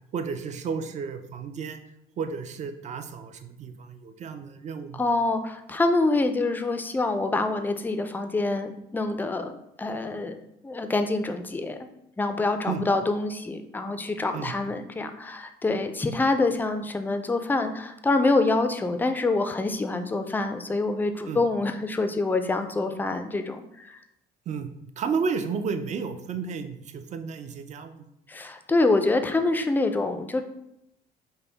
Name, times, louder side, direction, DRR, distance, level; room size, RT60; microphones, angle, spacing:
voice 1, 0.1-1.8 2.2-5.0 12.7-12.8 14.3-14.5 21.3-21.4 24.5-24.7 25.0-28.1, right 5 dB, 45° right, 8 dB, 0.5 m, -32 dB
voice 2, 5.0-9.5 9.8-10.4 10.6-11.8 12.2-24.0 28.3-30.4, left 2 dB, 10° left, 8 dB, 0.4 m, -26 dB
5.5 x 2.1 x 3.9 m, 0.82 s
cardioid pair, 110°, 17 cm